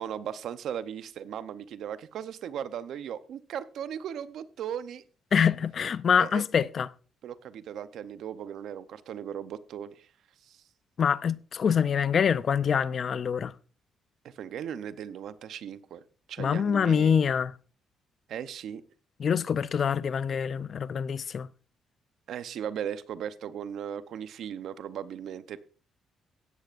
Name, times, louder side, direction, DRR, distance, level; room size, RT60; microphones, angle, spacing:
voice 1, 0.0-5.0 6.2-6.4 7.2-10.1 10.4-10.6 14.2-16.0 16.3-17.2 18.3-18.8 22.3-25.6, right 9 dB, 75° right, 0.7 m, -37 dB
voice 2, 5.3-6.9 11.0-13.5 16.4-17.5 19.2-21.5, left 7 dB, 50° left, 0.5 m, -25 dB
15.5 x 10.5 x 2.5 m
cardioid pair, 90°, 0 cm